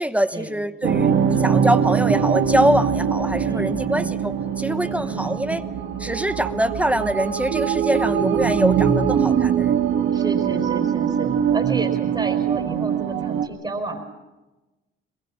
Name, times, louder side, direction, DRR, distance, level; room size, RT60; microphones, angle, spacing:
voice 1, 0.0-5.6 6.0-9.7, right 1 dB, 5° right, 11 dB, 1.1 m, -24 dB
sound 1, 0.8-13.5, right 8 dB, 80° right, 1.9 m, -22 dB
voice 2, 3.4-4.1 4.8-5.4 7.9-8.0 10.1-14.0, right 2 dB, 20° right, 2 dB, 4.7 m, -31 dB
22.5 x 21.5 x 7.4 m, 1.1 s
cardioid pair, 90°, 20 cm